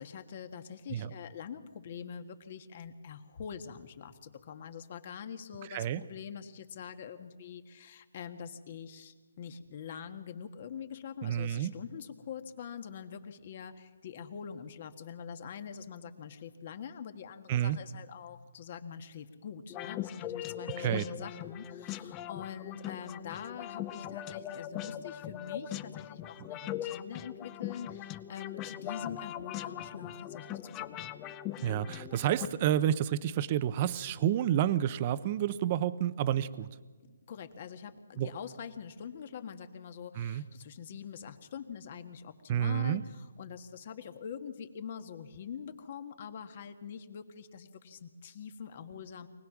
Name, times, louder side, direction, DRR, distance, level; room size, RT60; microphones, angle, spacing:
voice 1, 0.0-31.0 37.0-49.3, left 7 dB, 40° left, 9 dB, 1.7 m, -44 dB
voice 2, 5.7-6.0 11.2-11.7 17.5-17.8 20.8-21.0 31.6-36.7 38.2-38.3 40.2-40.4 42.5-43.0, right 11 dB, 30° right, 15 dB, 0.8 m, -29 dB
sound 1, 19.7-32.5, left 11 dB, 20° left, 0.7 m, -40 dB
24.0 x 18.5 x 6.1 m, 1.4 s
hypercardioid pair, 155°, 0 cm